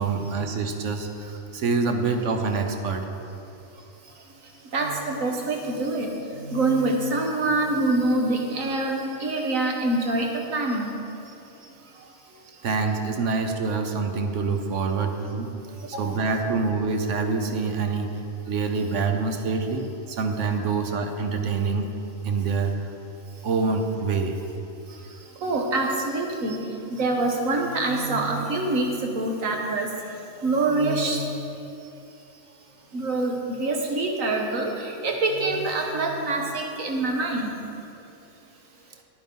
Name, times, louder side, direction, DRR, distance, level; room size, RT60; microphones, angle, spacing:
voice 1, 0.0-3.1 12.6-15.5 15.9-21.9 22.2-22.9 23.4-24.4, right 4 dB, 70° right, 5 dB, 1.2 m, -26 dB
voice 2, 4.7-10.9 15.9-16.2 25.4-26.6 26.9-29.9 30.4-31.2 32.9-37.5, right 2 dB, 85° right, 1 dB, 1.7 m, -25 dB
9.5 x 9.5 x 5.4 m, 2.7 s
omnidirectional pair, 1.4 m